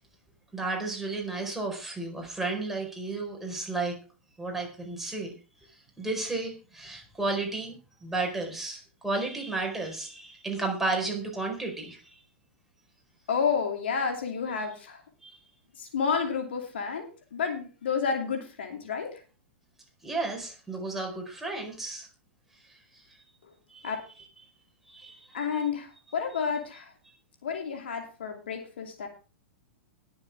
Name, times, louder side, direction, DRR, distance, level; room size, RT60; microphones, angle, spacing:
voice 1, 0.5-4.0 4.4-5.4 5.6-5.7 6.0-12.2 15.2-15.4 20.0-22.1 22.7-23.2 23.7-23.9 24.2-24.3 24.9-25.5, right 3 dB, 5° right, 0 dB, 4.5 m, -33 dB
voice 2, 13.3-15.0 15.8-19.2 23.4-23.5 23.8-24.0 25.3-26.9 27.4-29.1, left 6 dB, 60° left, 3 dB, 2.6 m, -30 dB
20.5 x 7.2 x 3.5 m, 0.35 s
figure-of-eight pair, 100°, 7 cm